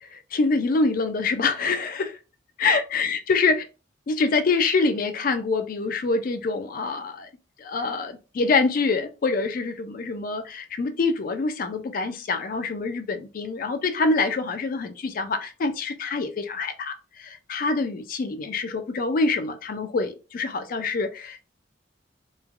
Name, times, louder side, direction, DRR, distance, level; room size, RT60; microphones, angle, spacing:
voice 1, 0.1-2.2 2.6-3.6 4.1-7.3 7.6-21.4, left 3 dB, 50° left, 0.4 m, -25 dB
3.1 x 2.2 x 2.4 m
head